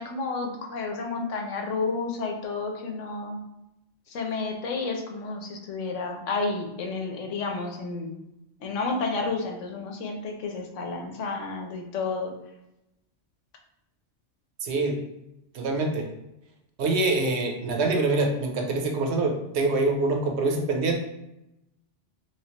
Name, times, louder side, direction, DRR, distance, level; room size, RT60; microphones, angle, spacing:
voice 1, 0.0-3.4 4.1-8.2 8.6-12.3, left 3 dB, 80° left, 2 dB, 1.0 m, -31 dB
voice 2, 14.6-15.0 15.5-16.0 16.8-21.0, right 3 dB, 65° right, 2 dB, 0.9 m, -25 dB
3.3 x 3.1 x 2.8 m, 0.89 s
omnidirectional pair, 1.3 m